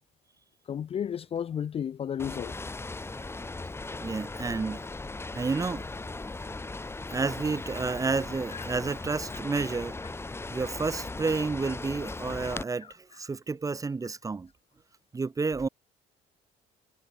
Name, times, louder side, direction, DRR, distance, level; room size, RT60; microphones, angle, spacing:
voice 1, 0.7-2.6 8.5-8.6, left 8 dB, 35° left, 0.5 m, -32 dB
sound 1, 2.2-12.6, left 3 dB, 15° left, 1.9 m, -38 dB
voice 2, 4.0-4.8 5.3-5.9 6.2-6.3 7.1-10.0 10.5-14.5 15.1-15.7, right 4 dB, 20° right, 0.8 m, -30 dB
cardioid pair, 110°, 17 cm